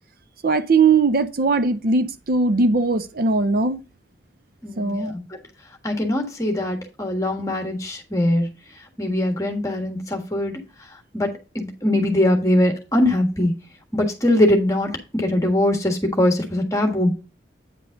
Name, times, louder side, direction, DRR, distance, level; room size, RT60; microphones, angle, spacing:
voice 1, 0.4-3.8 4.8-5.1, right 4 dB, 50° right, 0.5 m, -19 dB
voice 2, 4.6-5.4 5.8-8.5 9.0-10.6 11.1-13.5 13.9-17.1, left 1 dB, 15° left, 1.4 m, -21 dB
9.1 x 5.2 x 3.8 m
head